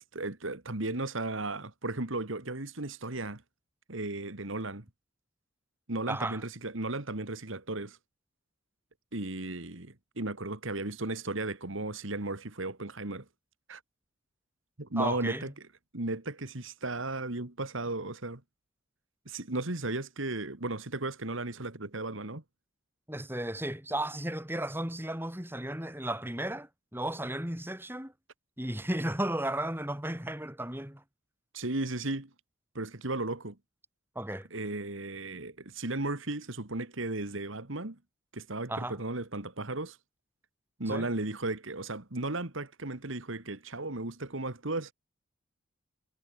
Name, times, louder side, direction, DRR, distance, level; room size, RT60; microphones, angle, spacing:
voice 1, 0.1-3.4 3.9-4.8 5.9-8.0 9.1-13.3 13.7-13.8 14.8-15.5 15.9-18.4 19.3-22.4 31.5-32.3 32.7-33.6 34.5-38.0 38.3-40.0 40.8-44.9, right 2 dB, 70° right, 2.1 m, -35 dB
voice 2, 6.1-6.4 15.0-15.5 23.1-28.1 28.6-31.0 34.1-34.5 38.7-39.0 40.9-41.0, right 1 dB, 10° right, 5.1 m, -34 dB
head